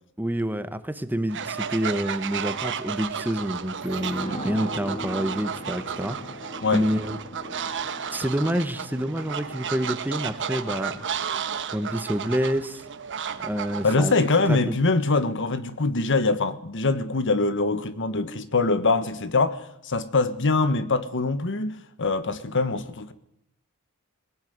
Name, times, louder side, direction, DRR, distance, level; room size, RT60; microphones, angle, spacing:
voice 1, 0.2-6.2 6.7-7.2 8.1-11.0 11.7-12.8 13.4-14.1 14.5-14.8, equal, 10° right, 1.2 m, -28 dB
Fowl, 1.3-14.3, right 7 dB, 60° right, 1.3 m, -33 dB
sound 1, 3.8-13.1 13.4-13.5, left 1 dB, 35° left, 1.7 m, -41 dB
voice 2, 13.8-23.1, left 3 dB, 60° left, 1.5 m, -23 dB
22.0 x 17.0 x 9.5 m
head